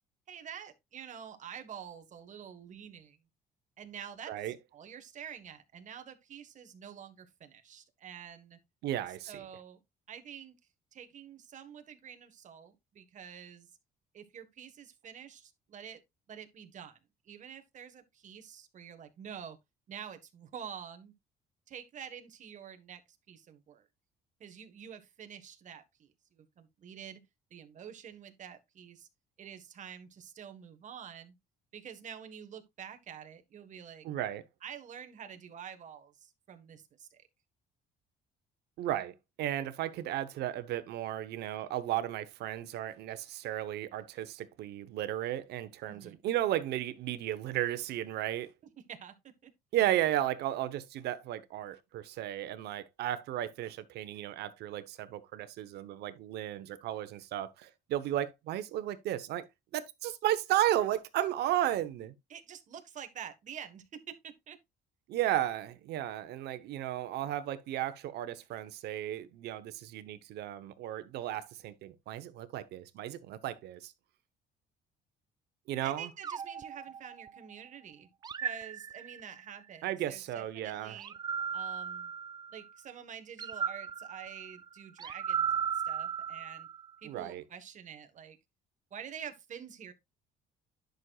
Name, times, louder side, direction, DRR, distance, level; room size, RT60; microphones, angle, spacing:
voice 1, 0.3-3.2 3.8-8.6 9.3-9.8 10.1-10.6 10.9-13.7 14.1-16.0 16.3-17.0 17.2-19.6 19.9-21.1 21.7-23.0 23.3-23.8 24.4-27.2 27.5-29.1 29.4-31.3 31.7-34.0 34.6-37.2 45.9-46.2 48.9-49.2 49.4-49.5 62.3-64.6 75.8-78.1 78.4-81.1 81.5-82.1 82.5-86.7 87.0-88.4 88.9-89.9, right 8 dB, 45° right, 1.4 m, -47 dB
voice 2, 8.8-9.5 34.0-34.4 38.8-48.5 49.7-59.5 59.7-62.1 65.1-73.9 75.7-76.1 79.8-81.0 87.0-87.4, right 12 dB, 75° right, 1.0 m, -34 dB
sound 1, 76.2-77.6 78.2-79.5 81.0-82.7 83.4-86.9, right 7 dB, 25° right, 0.3 m, -36 dB
10.5 x 6.4 x 2.4 m
cardioid pair, 110°, 17 cm